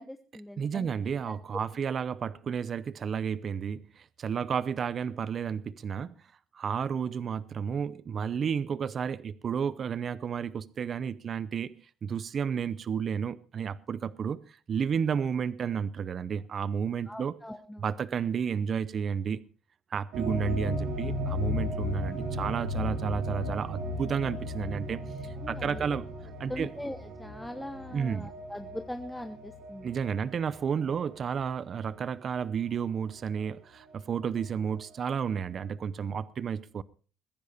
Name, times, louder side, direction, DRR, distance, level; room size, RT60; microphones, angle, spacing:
voice 1, 0.0-0.9 17.1-17.8 25.4-25.8 26.5-29.9, left 1 dB, 5° left, 1.0 m, -41 dB
voice 2, 0.6-6.1 6.5-11.8 12.0-17.4 17.8-19.4 19.9-26.1 26.4-26.7 27.9-28.3 29.8-36.8, right 7 dB, 40° right, 0.7 m, -32 dB
sound 1, 20.1-31.0 31.4-31.5 33.4-33.5, left 1 dB, 75° right, 3.4 m, -35 dB
21.5 x 10.5 x 4.2 m
cardioid pair, 120°, 0 cm